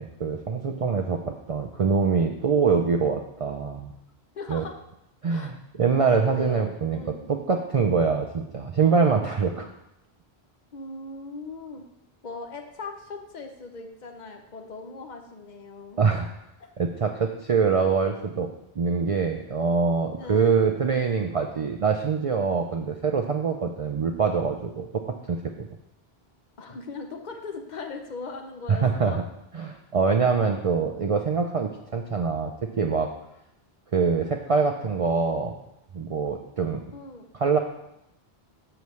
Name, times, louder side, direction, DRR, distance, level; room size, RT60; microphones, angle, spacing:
voice 1, 0.0-3.9 4.5-4.6 5.2-9.7 16.0-16.3 16.8-18.5 18.8-25.7 28.7-29.2 29.5-33.1 33.9-35.6 35.9-36.8 37.3-37.6, right 5 dB, 45° right, 4 dB, 0.5 m, -24 dB
voice 2, 4.3-4.8 5.3-5.5 6.2-7.2 10.7-11.8 12.2-16.0 20.2-20.6 26.6-29.2 36.9-37.3, left 3 dB, 45° left, 4 dB, 0.9 m, -39 dB
7.8 x 7.0 x 3.1 m, 0.83 s
omnidirectional pair, 1.1 m